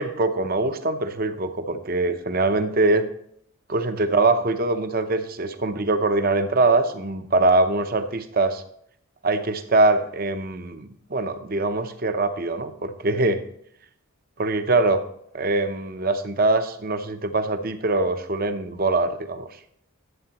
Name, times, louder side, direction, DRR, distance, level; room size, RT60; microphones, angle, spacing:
voice 1, 0.0-3.1 3.7-8.6 9.2-13.4 14.4-15.0 15.3-19.5, right 2 dB, 40° right, 9 dB, 0.7 m, -23 dB
11.0 x 8.1 x 2.9 m, 0.68 s
head